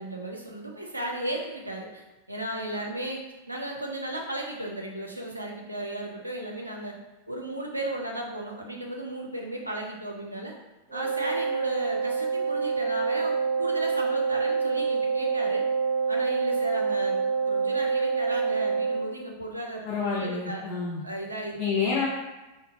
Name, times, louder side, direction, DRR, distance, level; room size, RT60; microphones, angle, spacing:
voice 1, 0.0-7.0 7.3-10.5 10.9-15.6 16.1-19.9 20.2-20.6 21.0-21.6, right 1 dB, 85° right, 0 dB, 0.5 m, -35 dB
Wind instrument woodwind instrument, 10.9-19.1, right 5 dB, 55° right, 1.4 m, -26 dB
voice 2, 19.8-21.0 21.6-22.1, left 5 dB, 40° left, -5 dB, 0.5 m, -28 dB
3.8 x 2.1 x 2.5 m, 1.1 s
figure-of-eight pair, 90°, 0 cm